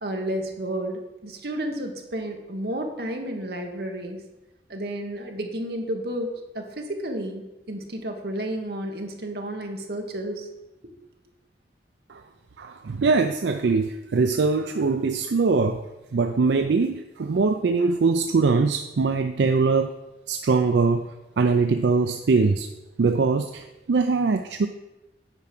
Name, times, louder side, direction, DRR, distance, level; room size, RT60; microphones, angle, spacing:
voice 1, 0.0-4.2 4.7-10.5, right 1 dB, 60° right, 3 dB, 1.3 m, -31 dB
voice 2, 12.6-15.8 16.1-19.9 20.3-21.1 21.4-22.7 23.0-24.7, right 4 dB, 80° right, 7 dB, 0.4 m, -22 dB
8.9 x 5.0 x 5.9 m, 1.0 s
head